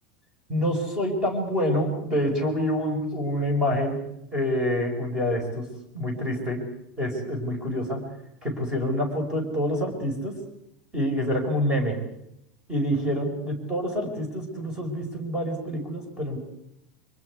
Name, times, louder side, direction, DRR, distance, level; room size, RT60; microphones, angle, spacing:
voice 1, 0.5-4.0 4.3-5.7 5.9-6.6 7.0-8.0 8.4-10.4 10.9-12.0 12.7-16.4, equal, 15° right, 2 dB, 5.1 m, -27 dB
29.5 x 24.5 x 4.9 m, 0.80 s
supercardioid pair, 180°, 5 cm